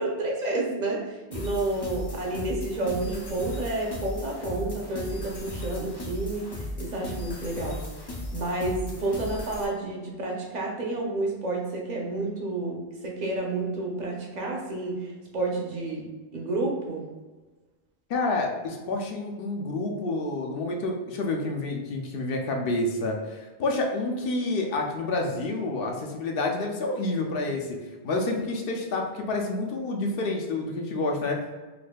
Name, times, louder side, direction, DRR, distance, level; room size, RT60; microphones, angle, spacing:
voice 1, 0.0-7.8 8.3-17.0, right 2 dB, 50° right, -1 dB, 0.7 m, -30 dB
sound 1, 1.3-9.7, left 1 dB, 35° left, 0.4 m, -36 dB
voice 2, 18.1-27.8 28.0-31.6, left 2 dB, 65° left, 1 dB, 0.7 m, -29 dB
4.0 x 2.5 x 2.2 m, 1.3 s
omnidirectional pair, 1.1 m